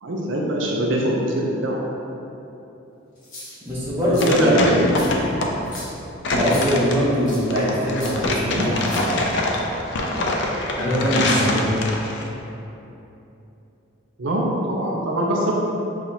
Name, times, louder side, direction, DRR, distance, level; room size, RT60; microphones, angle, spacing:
voice 1, 0.0-1.8 4.1-4.8 8.5-8.7 14.2-15.5, right 1 dB, 70° right, -2 dB, 0.5 m, -22 dB
sound 1, 3.2-3.7 4.1-4.3 4.9-5.1 5.6-5.9 6.5-6.6 7.3-7.4 8.0-8.1 8.8-9.4, left 1 dB, 45° left, 1.1 m, -38 dB
voice 2, 3.6-4.9 6.3-9.4 10.8-11.8, equal, 10° right, -9 dB, 0.8 m, -22 dB
sound 2, 3.7-12.3, left 1 dB, 60° left, 0.4 m, -25 dB
5.6 x 2.4 x 2.8 m, 2.9 s
head